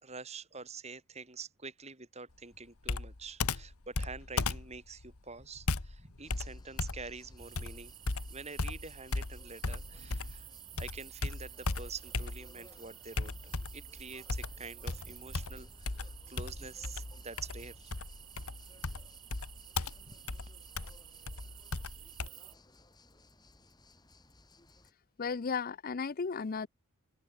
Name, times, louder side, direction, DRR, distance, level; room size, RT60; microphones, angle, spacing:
voice 1, 0.0-7.9 8.3-17.9 20.1-20.2, right 4 dB, 30° right, 4.0 m, -47 dB
Computer keyboard, 2.8-10.5 10.8-12.7 13.2-13.9 14.3-22.3, left 3 dB, 80° left, 1.5 m, -37 dB
sound 1, 6.2-24.9, left 1 dB, 20° left, 6.3 m, -58 dB
sound 2, 7.4-22.5, right 18 dB, 70° right, 1.5 m, -53 dB
voice 2, 25.2-26.7, left 5 dB, 40° left, 0.5 m, -34 dB
open air
head